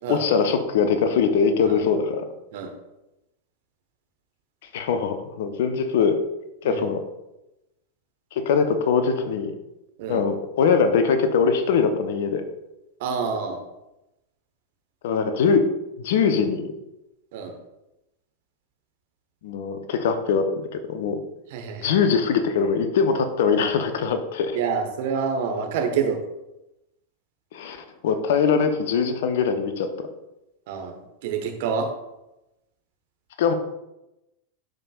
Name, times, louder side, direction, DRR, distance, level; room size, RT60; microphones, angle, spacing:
voice 1, 0.1-2.2 4.7-6.2 6.6-7.0 8.4-9.5 10.1-12.4 15.0-15.7 16.0-16.7 19.4-21.2 21.8-24.5 27.5-29.9 33.4-33.5, left 6 dB, 55° left, 8 dB, 0.7 m, -22 dB
voice 2, 13.0-13.6 17.3-17.5 21.5-21.9 24.5-26.2 30.7-31.9, right 6 dB, 50° right, 4 dB, 1.2 m, -27 dB
12.0 x 5.2 x 2.4 m, 0.94 s
figure-of-eight pair, 90°, 0 cm